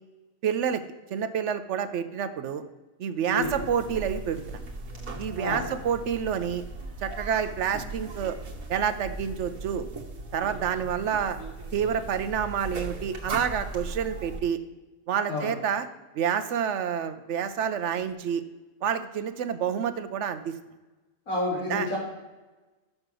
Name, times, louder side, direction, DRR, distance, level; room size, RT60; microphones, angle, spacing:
voice 1, 0.4-0.8 1.1-2.6 3.0-4.6 5.2-6.6 7.0-8.4 8.7-9.9 10.3-11.4 11.7-14.6 15.1-15.9 16.1-18.4 18.8-20.5 21.7-21.9, right 8 dB, 65° right, 10 dB, 0.8 m, -28 dB
sound 1, 3.4-14.4, right 2 dB, 85° right, 1.6 m, -38 dB
voice 2, 5.4-5.7 15.3-15.5 21.3-22.0, left 1 dB, 80° left, -7 dB, 3.5 m, -29 dB
6.5 x 6.5 x 6.1 m, 1.2 s
omnidirectional pair, 1.5 m